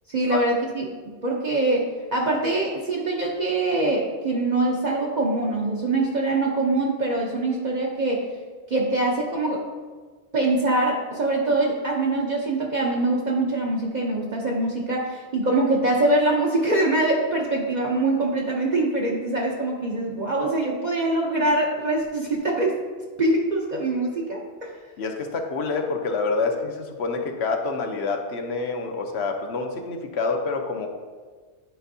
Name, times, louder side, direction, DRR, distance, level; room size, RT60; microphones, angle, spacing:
voice 1, 0.1-0.8 1.2-8.2 8.7-9.6 10.3-22.7 23.2-24.7, right 2 dB, 45° right, -2 dB, 0.7 m, -23 dB
voice 2, 25.0-30.9, left 4 dB, 70° left, 3 dB, 0.9 m, -27 dB
9.9 x 4.4 x 2.7 m, 1.5 s
omnidirectional pair, 1.2 m